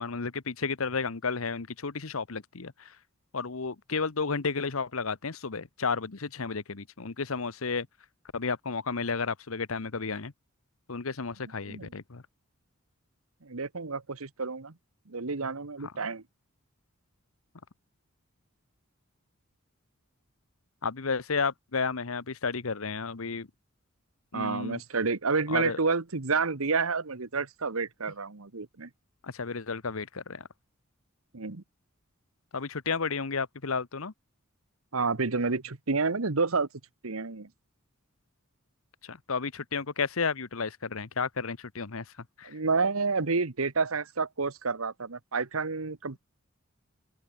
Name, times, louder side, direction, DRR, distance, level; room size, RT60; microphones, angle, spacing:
voice 1, 0.0-2.9 3.3-7.9 8.3-10.3 10.9-12.2 20.8-23.5 24.3-24.8 25.5-25.8 29.2-30.4 32.5-34.1 39.0-42.0 42.4-42.5, left 4 dB, 75° left, 1.1 m, -32 dB
voice 2, 13.4-14.7 15.1-16.2 24.3-28.9 31.3-31.6 34.9-36.7 37.0-37.5 42.4-46.2, right 4 dB, 75° right, 1.3 m, -29 dB
open air
head